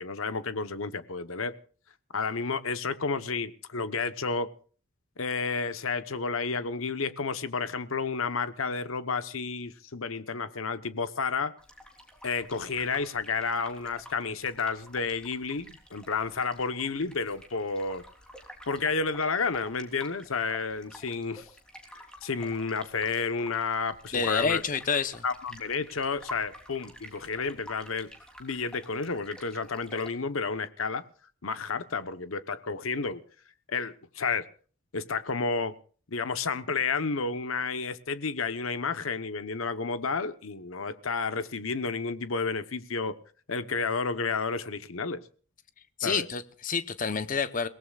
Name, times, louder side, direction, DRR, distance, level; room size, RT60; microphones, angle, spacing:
voice 1, 0.0-1.5 2.1-4.5 5.2-11.5 12.2-18.0 18.7-21.5 21.9-24.6 25.2-28.1 28.4-31.0 31.4-33.2 33.7-34.5 34.9-35.8 36.1-43.2 43.5-45.2 46.0-46.3, left 4 dB, 80° left, 1.1 m, -31 dB
sound 1, 11.6-30.1, equal, 5° left, 3.2 m, -50 dB
voice 2, 24.1-25.2 46.0-47.7, left 5 dB, 40° left, 0.9 m, -28 dB
29.0 x 18.0 x 2.4 m
head